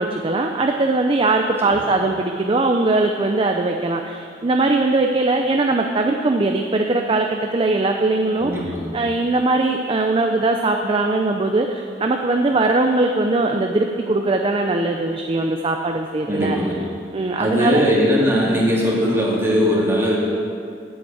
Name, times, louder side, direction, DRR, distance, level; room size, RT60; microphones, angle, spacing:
voice 1, 0.0-16.6 17.1-17.9 18.4-18.7, right 2 dB, 30° right, 3 dB, 0.5 m, -20 dB
voice 2, 8.4-8.9 16.3-16.7 17.4-20.2, equal, 15° right, -6 dB, 2.5 m, -19 dB
8.2 x 7.9 x 8.4 m, 2.3 s
head